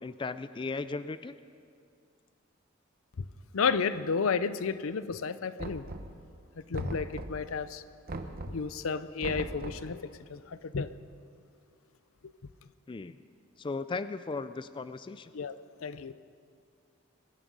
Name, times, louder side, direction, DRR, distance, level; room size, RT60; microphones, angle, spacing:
voice 1, 0.0-1.3 12.9-13.2 13.6-15.3, left 3 dB, 25° left, 13 dB, 0.3 m, -36 dB
voice 2, 3.5-5.9 6.6-7.8 8.5-10.9 15.3-16.1, left 5 dB, 80° left, 14 dB, 0.6 m, -32 dB
Knock, 5.6-6.3 6.7-7.5 8.1-8.7 9.2-9.9, right 2 dB, 45° right, 0.9 m, -39 dB
21.5 x 11.0 x 5.4 m, 2.3 s
head